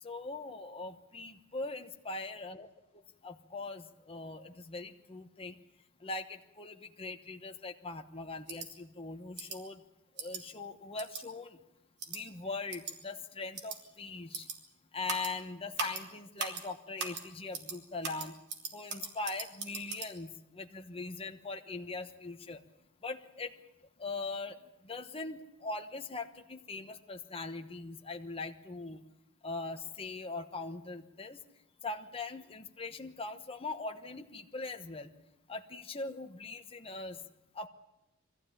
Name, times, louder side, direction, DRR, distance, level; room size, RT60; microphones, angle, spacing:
voice 1, 0.0-2.7 3.2-5.6 6.0-9.8 10.2-11.6 12.1-14.5 14.9-18.3 18.7-22.6 23.0-23.5 24.0-24.6 24.8-29.0 29.4-31.4 31.8-35.1 35.5-37.2 37.5-37.7, left 3 dB, 25° left, 5 dB, 1.2 m, -41 dB
sound 1, 8.5-8.7 9.4-9.6 10.2-10.4 11.0-11.2 12.0-12.2 12.7-12.9 13.5-13.8 14.3-14.6 15.1-15.3 15.8-16.0 16.4-16.6 17.0-17.2 17.5-17.8 18.0-20.1, right 5 dB, 55° right, 3.1 m, -39 dB
22.5 x 14.5 x 9.9 m, 0.89 s
head